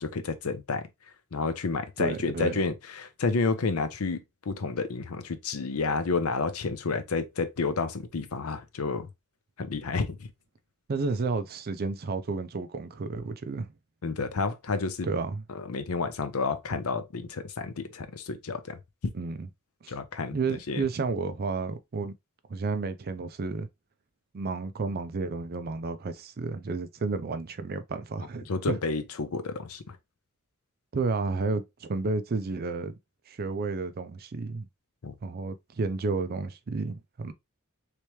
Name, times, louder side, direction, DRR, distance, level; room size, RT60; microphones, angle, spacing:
voice 1, 0.0-0.9 1.3-9.1 9.6-10.3 14.0-15.1 15.5-18.8 19.9-20.8 28.5-30.0 35.0-35.1, left 4 dB, 80° left, 0.6 m, -30 dB
voice 2, 2.0-2.6 10.9-13.7 15.0-15.4 19.1-19.5 19.8-19.9 20.3-22.1 22.5-23.7 24.3-28.8 30.9-33.0 33.3-34.7 35.2-37.3, right 4 dB, 45° right, 0.5 m, -31 dB
3.3 x 2.9 x 3.1 m
head